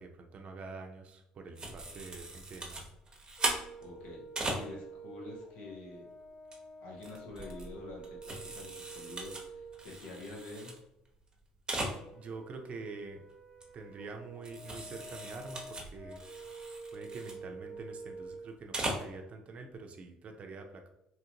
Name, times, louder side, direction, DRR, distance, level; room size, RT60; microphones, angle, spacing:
voice 1, 0.0-2.8 12.1-13.2 13.7-16.2 16.9-20.9, right 3 dB, 45° right, 4 dB, 0.6 m, -46 dB
sound 1, 1.5-4.6 6.3-6.5 7.0-10.8 11.0-11.1 11.3-11.4 11.7-12.0 13.6-13.7 14.4-17.3 18.5-19.1, right 2 dB, 25° right, 0.9 m, -39 dB
Brass instrument, 3.4-9.8 12.0-18.5, right 3 dB, 15° left, 0.8 m, -49 dB
voice 2, 3.8-6.1 6.8-10.8, left 2 dB, 75° left, -1 dB, 1.0 m, -47 dB
2.9 x 2.5 x 2.8 m, 0.84 s
hypercardioid pair, 65°, 3 cm